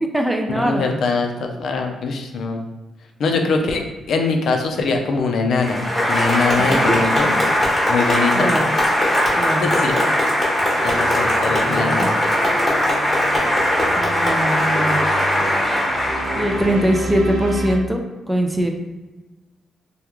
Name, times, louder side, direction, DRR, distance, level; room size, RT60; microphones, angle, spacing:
voice 1, 0.0-1.0 3.3-3.6 6.5-7.0 7.2-7.6 8.3-8.7 9.4-10.0 10.6-11.1 11.5-12.1 14.0-15.0 16.4-18.8, equal, 5° right, 3 dB, 0.3 m, -23 dB
voice 2, 0.5-2.6 3.2-5.8 6.1-7.4 7.9-8.5 9.6-10.0 10.8-12.1, left 4 dB, 60° left, 3 dB, 0.4 m, -22 dB
Applause, 5.6-17.1, left 1 dB, 15° left, 1.0 m, -19 dB
sound 1, 10.7-17.8, right 2 dB, 75° right, 0.6 m, -31 dB
3.4 x 2.2 x 2.9 m, 1.2 s
wide cardioid pair, 155°, 0 cm